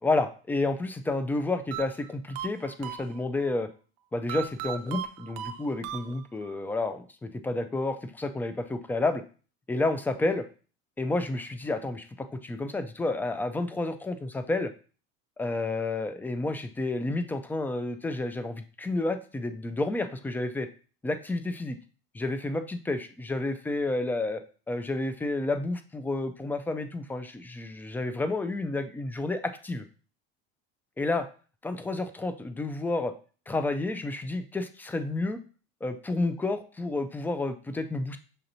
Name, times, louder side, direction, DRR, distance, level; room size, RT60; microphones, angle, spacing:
voice 1, 0.0-3.7 4.1-9.2 9.7-10.4 11.0-14.7 15.4-20.7 21.0-21.8 22.1-24.4 24.7-29.9 31.0-31.3 31.6-33.1 33.5-35.4 35.8-38.2, left 2 dB, 5° left, 9 dB, 0.3 m, -30 dB
sound 1, 1.7-3.5 4.3-6.6, right 11 dB, 55° right, 0.5 m, -38 dB
6.6 x 2.9 x 2.6 m, 0.38 s
supercardioid pair, 115°, 30 cm